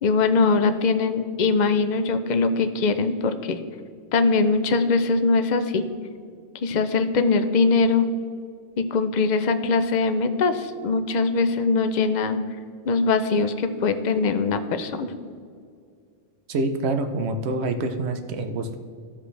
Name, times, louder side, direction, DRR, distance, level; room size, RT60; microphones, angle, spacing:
voice 1, 0.0-3.6 4.1-5.9 6.6-8.1 8.8-12.4 12.9-15.1, left 4 dB, 50° left, 9 dB, 0.5 m, -22 dB
voice 2, 16.5-18.8, right 2 dB, 60° right, 7 dB, 1.0 m, -26 dB
15.0 x 5.3 x 3.3 m, 2.2 s
omnidirectional pair, 1.3 m